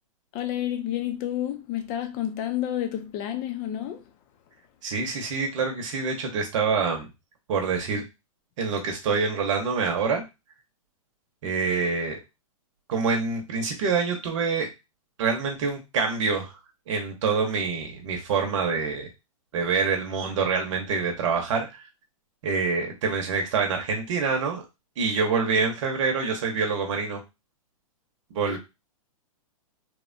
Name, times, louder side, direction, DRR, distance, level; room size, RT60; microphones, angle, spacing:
voice 1, 0.3-4.1 28.5-28.6, left 11 dB, 35° left, 0.5 m, -30 dB
voice 2, 4.8-7.1 7.5-8.0 8.6-10.2 11.4-12.2 12.9-14.7 15.2-16.6 16.9-19.1 19.5-21.8 22.4-24.6 25.0-27.2 28.3-28.6, right 5 dB, 55° right, 0.9 m, -26 dB
3.1 x 2.2 x 2.5 m
hypercardioid pair, 135°, 18 cm